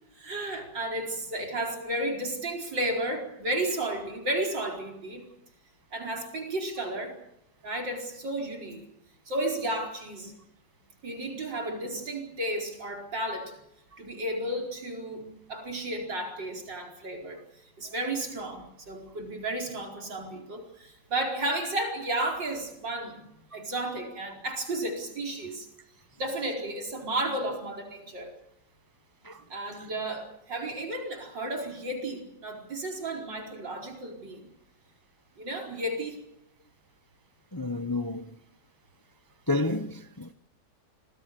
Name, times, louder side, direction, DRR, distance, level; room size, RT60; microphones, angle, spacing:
voice 1, 0.2-5.3 5.9-7.2 7.6-8.9 9.3-10.3 11.0-13.5 14.0-17.4 17.8-23.2 23.5-25.7 26.2-28.3 29.5-34.5 35.4-36.2, right 1 dB, 90° right, 5.3 m, -33 dB
voice 2, 37.5-38.3 39.5-40.3, left 2 dB, 20° left, 0.7 m, -30 dB
26.5 x 21.0 x 6.9 m
omnidirectional pair, 1.9 m